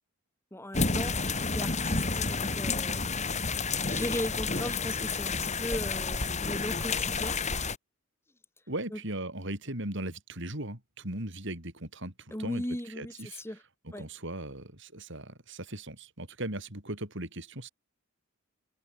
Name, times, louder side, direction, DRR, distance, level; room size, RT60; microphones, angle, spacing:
voice 1, 0.5-1.2 1.5-3.0 3.9-7.4 8.9-9.0 12.3-13.6 13.9-14.1, left 1 dB, 10° left, 4.7 m, -37 dB
sound 1, 0.7-7.8, left 4 dB, 35° left, 4.7 m, -30 dB
voice 2, 8.7-12.6 13.0-13.4 13.8-17.7, right 1 dB, 60° right, 6.1 m, -38 dB
open air
head